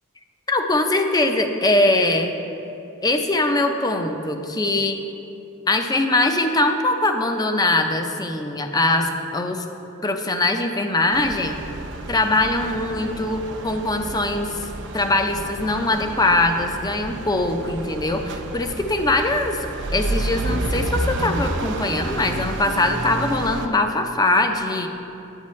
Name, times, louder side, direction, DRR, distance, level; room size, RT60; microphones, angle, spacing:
voice 1, 0.5-2.3 3.0-5.0 5.7-9.6 10.0-11.6 12.1-14.7 14.9-24.9, left 2 dB, 20° left, 5 dB, 0.5 m, -22 dB
sound 1, 11.1-23.7, right 2 dB, 60° right, 0.6 m, -30 dB
9.7 x 8.4 x 3.1 m, 2.9 s
head